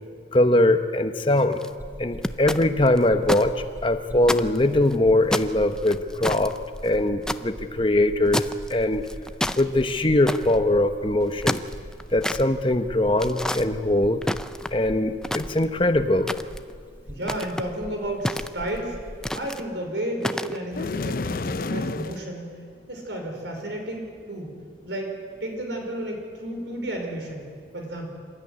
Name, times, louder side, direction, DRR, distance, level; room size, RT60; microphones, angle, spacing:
voice 1, 0.3-1.6 2.0-9.1 9.6-11.6 12.1-14.2 14.7-16.3, left 1 dB, 30° left, 8 dB, 0.9 m, -22 dB
sound 1, 1.3-1.7 2.2-3.4 3.8-3.9 4.2-5.0 5.3-7.4 8.3-8.7 9.1-9.6 10.3-10.6 11.2-12.4 13.2-13.6 14.2-14.8 15.2-15.8 16.3-16.7 17.2-17.7 18.3-18.8 19.2-19.6 20.2-20.6, left 1 dB, 5° left, 0.5 m, -29 dB
sound 2, 1.8-19.3, equal, 10° right, 2.2 m, -41 dB
voice 2, 17.1-19.0 19.3-22.5 22.9-24.6 24.8-27.5 27.7-28.1, right 1 dB, 75° right, 2 dB, 5.1 m, -32 dB
sound 3, 20.7-22.3, left 3 dB, 50° left, 0.5 m, -29 dB
27.0 x 13.5 x 9.7 m, 2.1 s
head